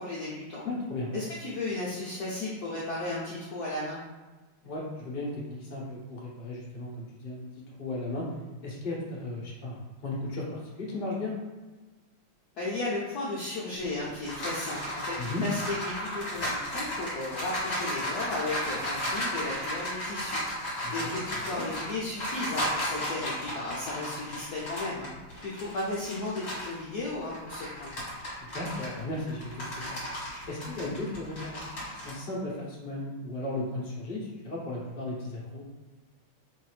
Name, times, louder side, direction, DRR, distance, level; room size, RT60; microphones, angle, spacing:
voice 1, 0.0-0.6 1.1-4.0 12.6-20.4 20.8-25.1 25.4-27.9, left 2 dB, 75° left, -6 dB, 0.9 m, -35 dB
voice 2, 0.6-1.1 4.6-7.4 7.8-8.3 8.6-11.3 15.2-15.4 20.8-21.6 28.4-30.0 30.5-35.6, left 2 dB, 55° left, -4 dB, 0.5 m, -36 dB
sound 1, 13.8-26.8 27.2-32.1, equal, 35° left, 1.2 m, -34 dB
3.9 x 2.6 x 3.2 m, 1.2 s
omnidirectional pair, 2.4 m